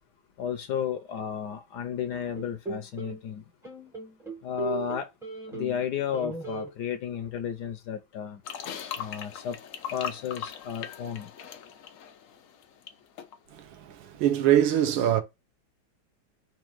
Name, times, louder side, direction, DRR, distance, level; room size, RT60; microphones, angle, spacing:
voice 1, 0.4-3.4 4.4-5.1 5.5-8.4 9.0-9.6 9.9-11.3, left 8 dB, 70° left, 1.1 m, -33 dB
sound 1, 2.4-3.2 3.6-5.8 6.1-6.7, right 3 dB, 5° right, 0.5 m, -37 dB
sound 2, 8.5-12.9 13.2-13.4, left 8 dB, 90° left, 0.7 m, -39 dB
voice 2, 13.5-15.2, right 11 dB, 80° right, 1.5 m, -24 dB
4.8 x 2.4 x 4.5 m
omnidirectional pair, 2.2 m